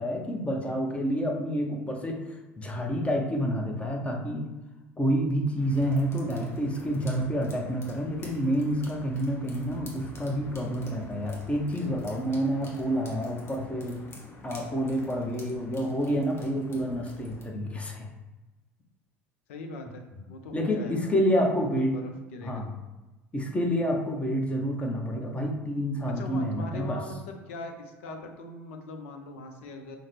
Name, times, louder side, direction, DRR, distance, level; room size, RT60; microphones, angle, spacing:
voice 1, 0.0-2.2 2.6-4.5 5.0-14.0 14.4-18.1 20.5-21.9 22.4-22.7 23.3-27.0, equal, 15° left, 1 dB, 0.8 m, -28 dB
sound 1, 5.6-17.4, left 2 dB, 35° left, 1.2 m, -47 dB
voice 2, 19.5-21.1 21.7-22.6 26.2-30.0, left 2 dB, 70° left, 4 dB, 0.6 m, -41 dB
5.5 x 2.1 x 3.3 m, 1.1 s
figure-of-eight pair, 70°, 7 cm